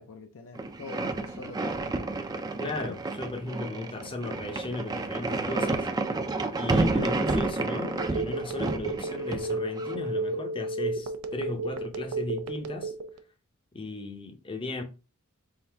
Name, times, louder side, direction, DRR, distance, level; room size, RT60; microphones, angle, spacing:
voice 1, 0.0-1.9 3.8-4.2, left 4 dB, 65° left, 0.5 m, -45 dB
sound 1, 0.6-10.0, right 3 dB, 20° right, 0.4 m, -30 dB
voice 2, 2.6-5.9 6.5-12.9 13.7-14.8, left 2 dB, 25° left, 0.6 m, -36 dB
Telephone, 8.0-13.2, right 2 dB, 85° right, 0.5 m, -32 dB
3.8 x 2.6 x 4.4 m
head